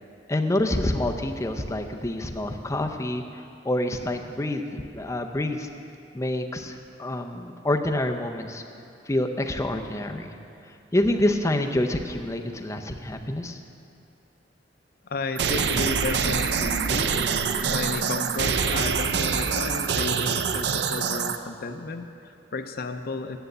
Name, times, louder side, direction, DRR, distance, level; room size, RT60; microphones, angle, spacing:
voice 1, 0.3-5.7 6.1-8.6 9.1-10.3 10.9-13.6, left 1 dB, 15° left, 4 dB, 0.6 m, -27 dB
voice 2, 15.0-17.3 17.7-23.4, left 3 dB, 55° left, 7 dB, 0.6 m, -33 dB
sound 1, 15.4-21.4, right 6 dB, 65° right, 0.5 m, -25 dB
10.0 x 6.5 x 8.0 m, 2.5 s
head